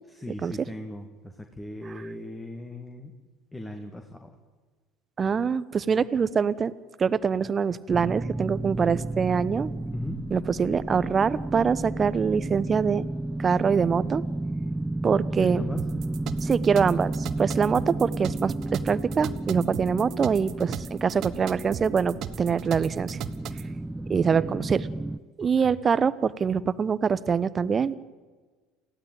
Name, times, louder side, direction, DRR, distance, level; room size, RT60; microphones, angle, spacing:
voice 1, 0.1-3.1 3.5-4.4 9.9-10.2 15.4-15.8 24.4-24.7 25.4-25.8, left 2 dB, 10° left, 5 dB, 2.3 m, -39 dB
voice 2, 5.2-6.7 7.0-9.7 10.3-13.0 13.4-14.2 15.0-15.6 16.4-23.2 24.1-24.8 25.4-28.0, right 6 dB, 30° right, 17 dB, 1.0 m, -24 dB
sound 1, 7.9-25.2, right 2 dB, 10° right, 0.7 m, -32 dB
sound 2, 15.8-23.7, right 10 dB, 55° right, 1.4 m, -38 dB
28.5 x 15.5 x 9.3 m, 1.4 s
hypercardioid pair, 65°, 0 cm